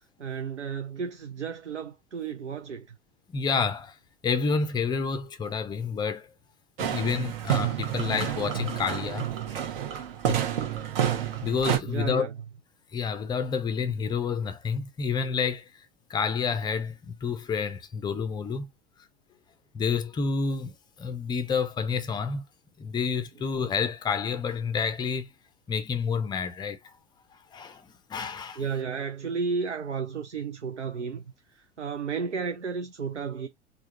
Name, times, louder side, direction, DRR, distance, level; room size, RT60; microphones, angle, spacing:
voice 1, 0.2-3.0 11.8-12.3 28.6-33.5, right 5 dB, 85° right, 0.5 m, -33 dB
voice 2, 3.3-4.0 4.2-6.3 6.8-9.3 10.3-10.4 11.4-12.3 12.9-18.7 19.7-22.4 22.8-25.3 25.7-26.9 27.5-28.6, left 5 dB, 15° left, 0.5 m, -29 dB
sound 1, 6.8-11.8, right 10 dB, 55° right, 0.9 m, -29 dB
3.4 x 2.1 x 2.9 m
figure-of-eight pair, 85°, 34 cm